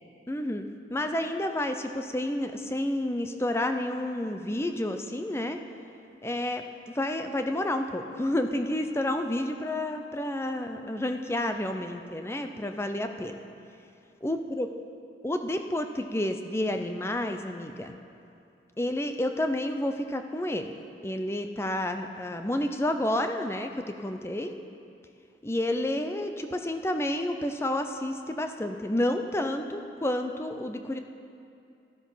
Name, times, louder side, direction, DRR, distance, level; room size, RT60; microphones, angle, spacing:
voice 1, 0.3-0.6 0.9-5.6 6.2-13.3 14.2-14.7 15.2-18.0 18.8-20.7 21.0-24.5 25.4-31.0, left 1 dB, 15° left, 6 dB, 0.5 m, -30 dB
13.0 x 12.5 x 5.6 m, 2.5 s
head